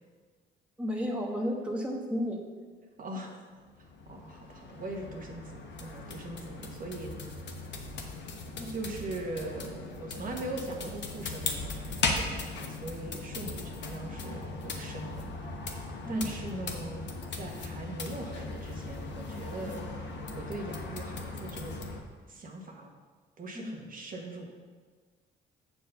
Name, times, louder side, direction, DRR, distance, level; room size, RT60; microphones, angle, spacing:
voice 1, 0.8-2.4 8.6-8.7 16.0-16.3 23.5-23.7, equal, 5° right, -1 dB, 1.1 m, -32 dB
voice 2, 3.0-3.5 4.0-7.1 8.6-15.2 16.1-17.0 17.3-21.7 22.3-22.9 23.4-24.5, right 2 dB, 45° right, 1 dB, 1.4 m, -41 dB
sound 1, 3.5-22.0, left 3 dB, 65° left, 1.1 m, -38 dB
7.3 x 4.5 x 6.9 m, 1.5 s
cardioid pair, 90°, 20 cm